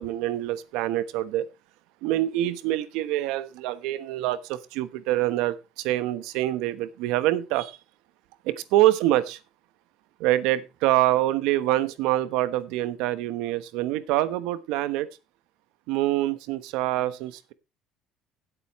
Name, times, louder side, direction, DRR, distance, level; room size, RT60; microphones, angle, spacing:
voice 1, 0.0-1.5 2.0-7.8 8.4-9.4 10.2-15.1 15.9-17.5, right 15 dB, 85° right, 13 dB, 1.1 m, -25 dB
17.0 x 8.2 x 3.1 m, 0.27 s
cardioid pair, 175°, 0 cm